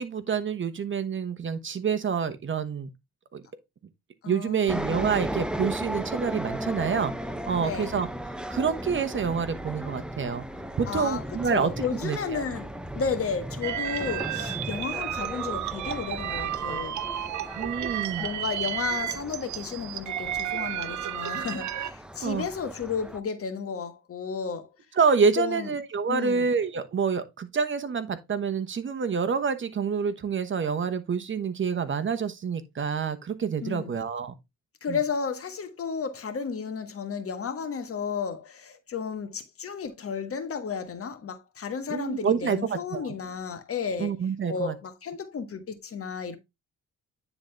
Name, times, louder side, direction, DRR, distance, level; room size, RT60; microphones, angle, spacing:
voice 1, 0.0-2.9 3.3-3.4 4.3-7.1 7.5-8.1 8.5-10.4 10.8-11.7 12.0-12.4 17.5-18.3 22.2-22.5 25.0-34.3 34.9-35.0 41.9-43.1 44.0-44.7, right 6 dB, 40° right, 1.1 m, -27 dB
voice 2, 4.2-4.8 7.6-7.9 10.9-17.0 18.2-24.7 25.4-25.7 26.1-26.5 33.6-33.9 34.8-44.1 44.5-46.4, left 6 dB, 50° left, 1.4 m, -33 dB
sound 1, 4.7-23.2, right 1 dB, 5° right, 0.7 m, -36 dB
sound 2, 13.6-21.9, right 11 dB, 70° right, 0.8 m, -32 dB
9.6 x 4.0 x 3.4 m
cardioid pair, 90°, 30 cm